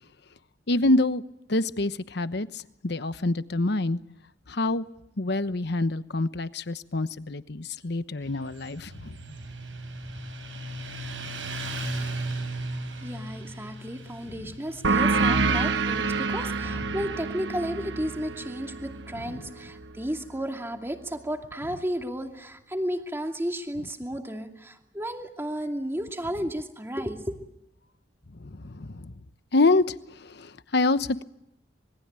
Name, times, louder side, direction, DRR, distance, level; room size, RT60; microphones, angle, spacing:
voice 1, 0.7-1.2 1.5-4.0 4.5-4.8 5.2-9.1 14.4-14.5 16.9-17.0 19.3-19.4 28.4-29.1 29.5-31.2, left 2 dB, 65° left, 13 dB, 1.0 m, -26 dB
Motorcycle, 8.2-19.3, right 1 dB, 85° right, 7.9 m, -37 dB
voice 2, 13.0-27.4, equal, 15° right, 4 dB, 2.6 m, -33 dB
sound 1, 14.8-20.0, right 4 dB, 70° right, 1.1 m, -27 dB
26.5 x 22.5 x 9.0 m, 0.83 s
head